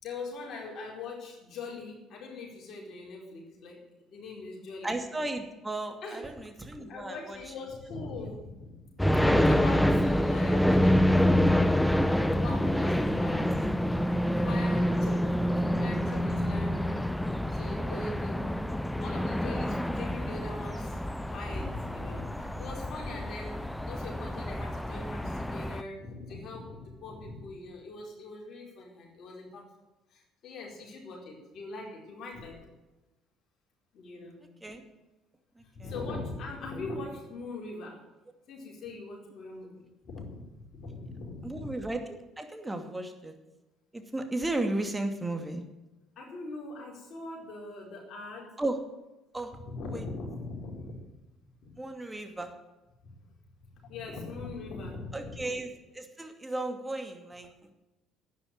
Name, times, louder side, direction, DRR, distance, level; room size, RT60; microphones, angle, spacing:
voice 1, 0.0-4.9 6.0-6.3 6.9-8.8 9.1-13.7 14.4-15.3 15.8-17.1 17.5-18.4 18.9-21.0 21.3-29.7 30.1-32.7 33.9-34.4 35.7-38.0 38.5-41.7 46.2-48.5 49.7-51.0 51.6-51.8 53.8-55.4, left 3 dB, 50° left, -1 dB, 4.7 m, -41 dB
voice 2, 4.8-7.4 34.6-34.8 35.6-35.9 41.4-43.3 43.9-45.6 48.6-48.8 49.3-49.5 49.9-50.0 51.8-52.5 55.1-57.7, right 2 dB, 15° right, 5 dB, 2.5 m, -35 dB
sound 1, 9.0-25.8, equal, 5° left, 0.8 m, -27 dB
11.5 x 9.7 x 9.5 m, 1.1 s
figure-of-eight pair, 55°, 0 cm